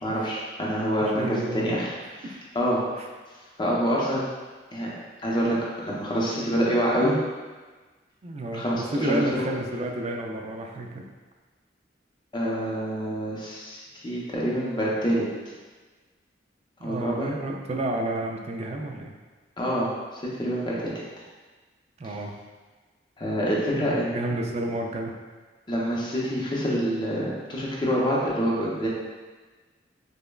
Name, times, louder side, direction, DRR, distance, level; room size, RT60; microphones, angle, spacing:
voice 1, 0.0-1.9 2.2-2.8 3.6-4.2 4.7-4.9 5.2-5.6 5.8-7.1 8.5-9.4 12.3-15.2 16.8-17.3 19.6-19.9 20.4-20.9 22.0-22.1 23.2-24.1 25.7-28.9, equal, 25° left, -5 dB, 0.6 m, -26 dB
voice 2, 1.0-1.8 2.2-2.4 8.2-11.0 16.8-19.1 22.0-22.3 23.7-25.1, right 1 dB, 35° right, 2 dB, 0.3 m, -31 dB
5.1 x 2.2 x 2.3 m, 1.3 s
head